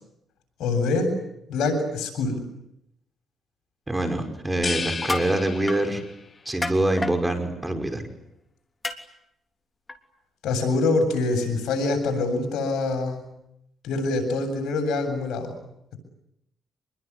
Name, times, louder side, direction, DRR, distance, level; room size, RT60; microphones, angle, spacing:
voice 1, 0.6-1.1 1.5-2.4 10.4-13.2 13.8-15.5, left 3 dB, 80° left, 5 dB, 8.0 m, -25 dB
voice 2, 3.9-6.0 6.5-8.1, right 1 dB, 10° right, 6 dB, 5.6 m, -25 dB
sound 1, 4.6-6.3, left 4 dB, 35° left, 2.3 m, -32 dB
sound 2, 4.9-5.3 5.7-5.8 6.6-7.2 8.8-9.0 9.9-10.0, left 2 dB, 20° left, 3.2 m, -29 dB
26.5 x 22.0 x 9.8 m, 0.82 s
cardioid pair, 90°, 0 cm